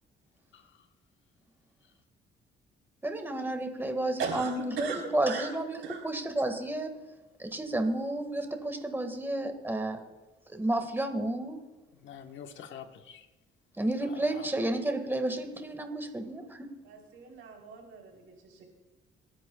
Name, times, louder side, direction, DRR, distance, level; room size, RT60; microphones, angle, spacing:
voice 1, 3.0-5.8 6.0-6.9 7.4-10.0 10.5-11.6 13.8-16.7, right 1 dB, 10° right, 6 dB, 1.8 m, -31 dB
voice 2, 4.2-5.5 5.8-6.0 16.8-18.6, right 6 dB, 85° right, 0 dB, 4.0 m, -38 dB
voice 3, 12.0-13.3 14.1-14.5, left 8 dB, 70° left, 6 dB, 1.3 m, -46 dB
27.5 x 10.5 x 2.3 m, 1.2 s
cardioid pair, 90°, 20 cm